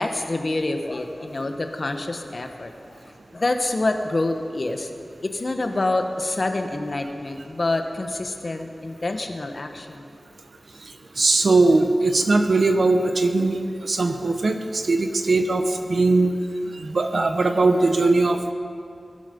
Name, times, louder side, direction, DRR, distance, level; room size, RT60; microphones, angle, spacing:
voice 1, 0.0-4.9 5.2-10.1, left 2 dB, 45° left, 5 dB, 1.4 m, -27 dB
voice 2, 11.2-16.3 16.8-18.5, right 3 dB, 65° right, 7 dB, 1.1 m, -20 dB
22.5 x 11.5 x 5.4 m, 2.4 s
wide cardioid pair, 85°, 0 cm